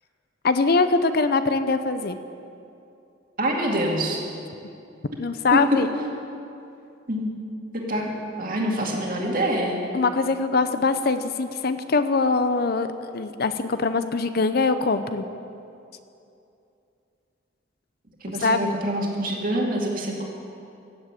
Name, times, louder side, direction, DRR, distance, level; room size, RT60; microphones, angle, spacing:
voice 1, 0.4-2.2 5.2-5.9 9.9-12.9 13.1-15.2 18.4-18.7, left 4 dB, 50° left, 11 dB, 0.6 m, -22 dB
voice 2, 3.4-4.2 5.5-5.6 7.1-7.3 7.7-8.1 8.4-9.8 18.2-20.2, right 1 dB, 45° right, -1 dB, 2.3 m, -25 dB
15.0 x 7.8 x 8.3 m, 2.7 s
head